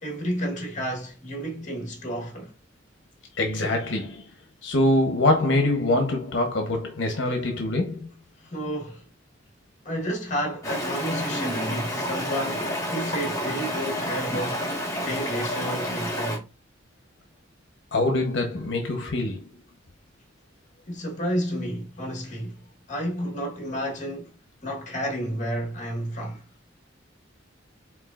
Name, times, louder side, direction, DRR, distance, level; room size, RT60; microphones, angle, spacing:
voice 1, 0.0-2.5 8.4-9.1 9.8-16.5 20.9-22.6 22.9-24.4 24.6-26.4, equal, 40° left, 1.2 m, -31 dB
voice 2, 3.4-4.3 4.6-8.1 17.9-19.4, left 2 dB, 70° left, 0.9 m, -24 dB
Stream, 10.6-16.4, equal, 20° left, 1.5 m, -29 dB
4.7 x 3.8 x 2.4 m
head